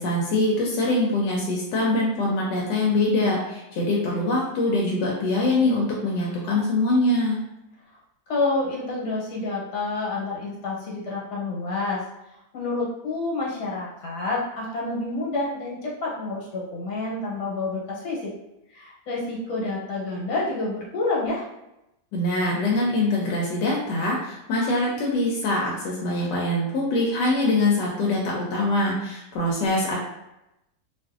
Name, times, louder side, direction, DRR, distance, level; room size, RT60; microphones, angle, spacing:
voice 1, 0.0-7.4 22.1-30.0, left 2 dB, 85° left, -3 dB, 1.2 m, -23 dB
voice 2, 8.3-12.0 12.5-18.3 18.7-21.4, left 3 dB, 70° left, -4 dB, 1.4 m, -28 dB
2.8 x 2.5 x 2.4 m, 0.90 s
omnidirectional pair, 1.8 m